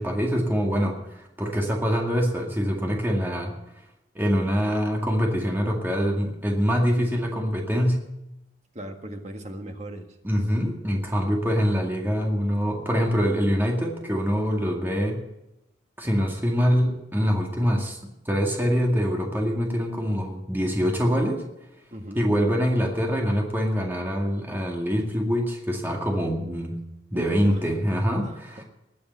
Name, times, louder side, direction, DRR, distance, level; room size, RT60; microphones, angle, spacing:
voice 1, 0.0-3.8 4.2-8.1 10.2-15.2 16.0-18.0 18.3-21.4 22.2-26.8 27.1-28.6, equal, 10° right, -1 dB, 2.1 m, -24 dB
voice 2, 8.7-10.2 12.2-12.3 21.9-22.2 27.1-27.6 28.2-28.6, right 1 dB, 35° right, 4 dB, 1.7 m, -38 dB
20.0 x 7.1 x 8.2 m, 0.90 s
head